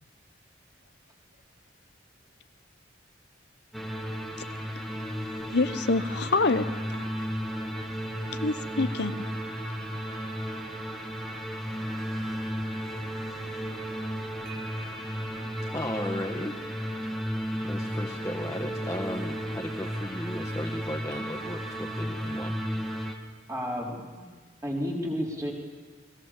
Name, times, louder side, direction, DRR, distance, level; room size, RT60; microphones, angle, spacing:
sound 1, 3.7-23.1, equal, ahead, 2.0 m, -34 dB
voice 1, 5.5-7.1 8.4-9.2, left 3 dB, 65° left, 11 dB, 0.9 m, -26 dB
sound 2, 6.7-22.7, right 4 dB, 55° right, 2.9 m, -49 dB
voice 2, 15.7-16.6 17.6-22.6, left 1 dB, 15° left, 1 dB, 1.4 m, -35 dB
voice 3, 23.5-24.2 24.6-25.5, equal, 15° right, -2 dB, 4.3 m, -31 dB
29.0 x 21.0 x 7.5 m, 1.5 s
head